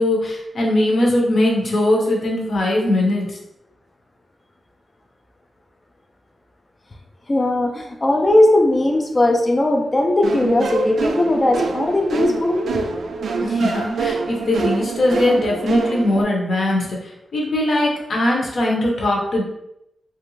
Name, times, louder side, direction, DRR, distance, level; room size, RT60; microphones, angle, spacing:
voice 1, 0.0-3.4 13.4-19.4, left 1 dB, 55° left, -2 dB, 0.8 m, -20 dB
voice 2, 7.3-12.6, left 1 dB, 25° left, 2 dB, 0.4 m, -18 dB
sound 1, 10.2-16.2, right 4 dB, 85° right, 0.3 m, -25 dB
3.1 x 2.5 x 3.1 m, 0.84 s
wide cardioid pair, 155°, 0 cm